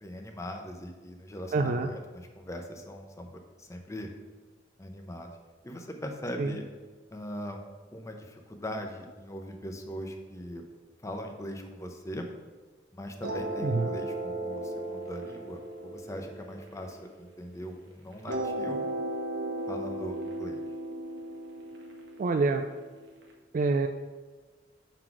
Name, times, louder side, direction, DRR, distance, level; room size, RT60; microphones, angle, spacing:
voice 1, 0.0-4.1 4.8-5.3 5.6-6.7 7.1-7.6 7.9-10.7 11.0-12.3 12.9-18.9 19.7-20.6, equal, 15° left, 3 dB, 0.7 m, -40 dB
voice 2, 1.5-1.9 6.4-6.6 13.6-13.9 22.2-22.6 23.5-23.9, right 3 dB, 45° right, 6 dB, 0.3 m, -26 dB
sound 1, 13.2-17.6 18.3-23.2, right 1 dB, 85° right, 1.2 m, -36 dB
6.4 x 4.0 x 5.9 m, 1.4 s
head